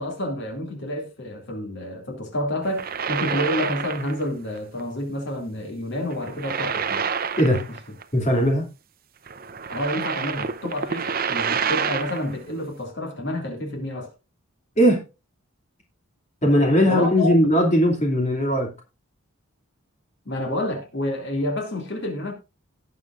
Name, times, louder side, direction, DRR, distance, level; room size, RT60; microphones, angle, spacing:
voice 1, 0.0-7.1 7.5-7.6 9.7-14.1 16.5-17.4 20.3-22.3, left 1 dB, 55° left, 2.5 m, -29 dB
sound 1, 2.6-4.3 4.6-4.8 6.1-8.0 8.3-8.4 9.3-12.3, right 6 dB, 40° right, 0.7 m, -28 dB
voice 2, 8.1-8.6 14.8-15.0 16.4-18.7, equal, 30° left, 2.5 m, -19 dB
18.0 x 7.4 x 2.5 m
head